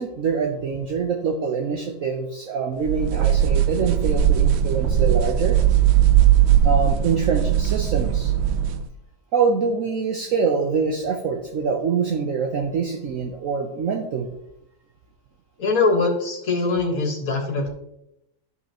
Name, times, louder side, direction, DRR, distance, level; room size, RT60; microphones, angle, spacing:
voice 1, 0.0-5.6 6.6-8.3 9.3-14.3, right 5 dB, 60° right, 3 dB, 1.1 m, -25 dB
sound 1, 2.9-8.9, right 10 dB, 80° right, 0.6 m, -19 dB
voice 2, 15.6-17.7, left 3 dB, 60° left, 2 dB, 1.9 m, -22 dB
12.0 x 5.7 x 2.9 m, 0.82 s
omnidirectional pair, 1.7 m